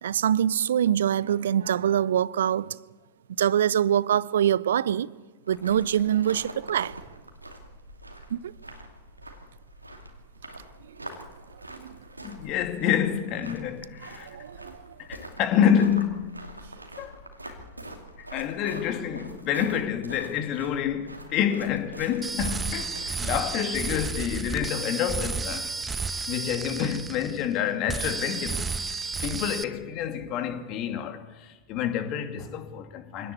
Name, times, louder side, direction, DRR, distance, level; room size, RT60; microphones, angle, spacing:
voice 1, 0.0-2.8 3.4-5.1 5.5-7.0 8.3-8.5 11.7-12.0 14.2-14.8, right 10 dB, 60° right, 0.7 m, -24 dB
sound 1, 5.4-23.1, right 1 dB, 85° right, 2.5 m, -44 dB
voice 2, 12.2-14.3 15.1-16.4 17.0-17.2 17.5-17.6 18.2-25.7 26.3-28.8 29.2-33.3, left 9 dB, 40° left, 2.6 m, -28 dB
sound 2, 22.2-27.6 27.9-29.6, right 4 dB, 15° right, 1.1 m, -32 dB
24.5 x 17.5 x 8.5 m
figure-of-eight pair, 90°, 0 cm